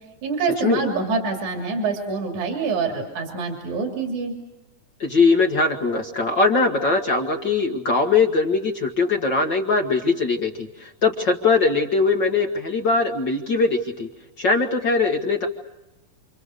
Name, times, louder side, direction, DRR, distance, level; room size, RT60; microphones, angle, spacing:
voice 1, 0.2-4.3, right 4 dB, 60° right, 2 dB, 4.0 m, -25 dB
voice 2, 5.0-14.1 14.4-15.5, left 4 dB, 45° left, 3 dB, 1.5 m, -21 dB
28.5 x 26.5 x 6.7 m, 0.96 s
omnidirectional pair, 3.9 m